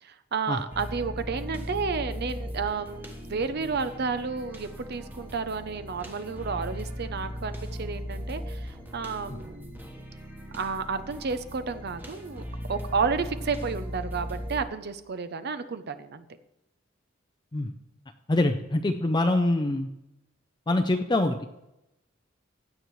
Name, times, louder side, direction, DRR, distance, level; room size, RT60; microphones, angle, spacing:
voice 1, 0.0-9.6 10.5-12.4 12.7-16.2, right 5 dB, 55° right, 11 dB, 0.6 m, -31 dB
sound 1, 0.7-14.6, equal, 10° right, 1.2 m, -38 dB
voice 2, 18.3-19.9 20.7-21.5, left 2 dB, 20° left, 6 dB, 0.5 m, -24 dB
16.0 x 9.4 x 3.2 m, 0.89 s
head